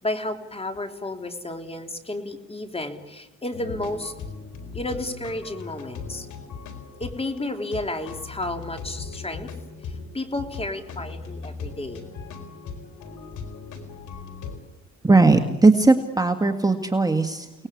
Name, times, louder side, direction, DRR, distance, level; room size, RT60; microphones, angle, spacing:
voice 1, 0.0-4.1 4.7-6.3 7.0-9.5 9.9-12.1, left 2 dB, 20° left, 6 dB, 3.5 m, -32 dB
sound 1, 3.5-14.6, left 5 dB, 75° left, 4.4 m, -38 dB
voice 2, 15.0-17.7, right 3 dB, 10° right, 6 dB, 1.9 m, -18 dB
30.0 x 19.5 x 8.6 m, 0.93 s
cardioid pair, 90°, 30 cm